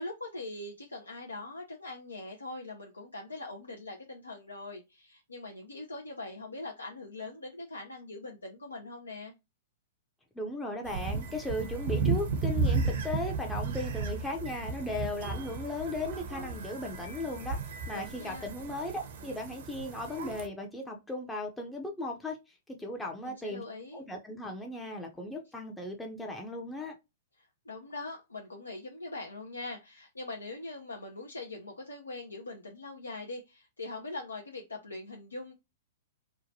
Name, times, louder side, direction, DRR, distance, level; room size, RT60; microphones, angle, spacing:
voice 1, 0.0-9.3 17.9-18.5 23.2-24.0 27.4-35.5, left 2 dB, 90° left, 0.5 m, -42 dB
voice 2, 10.4-17.6 17.9-23.6 23.9-26.9, left 1 dB, 10° left, 0.5 m, -37 dB
sound 1, 10.8-20.5, right 4 dB, 60° right, 0.6 m, -34 dB
2.8 x 2.2 x 2.6 m
figure-of-eight pair, 110°, 0 cm